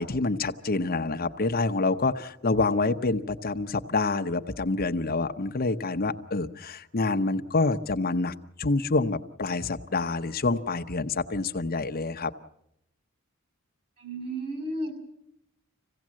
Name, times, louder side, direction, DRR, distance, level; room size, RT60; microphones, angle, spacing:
voice 1, 0.0-12.3, left 3 dB, 45° left, 7 dB, 0.8 m, -27 dB
voice 2, 14.0-14.9, right 1 dB, 50° right, 6 dB, 6.2 m, -33 dB
26.0 x 17.0 x 7.5 m, 0.80 s
head